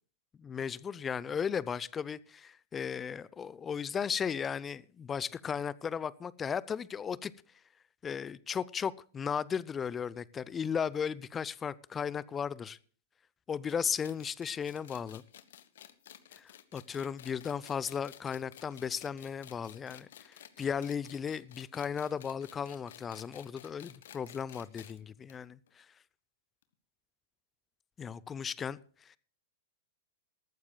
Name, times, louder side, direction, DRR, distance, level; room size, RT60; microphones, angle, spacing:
voice 1, 0.4-7.3 8.0-12.8 13.5-15.2 16.4-25.9 28.0-29.2, left 7 dB, 20° left, 0.6 m, -36 dB
sound 1, 13.7-25.0 25.3-25.4 25.7-25.8 26.6-26.7, left 10 dB, 60° left, 1.2 m, -53 dB
19.5 x 14.5 x 2.3 m
figure-of-eight pair, 105°, 0 cm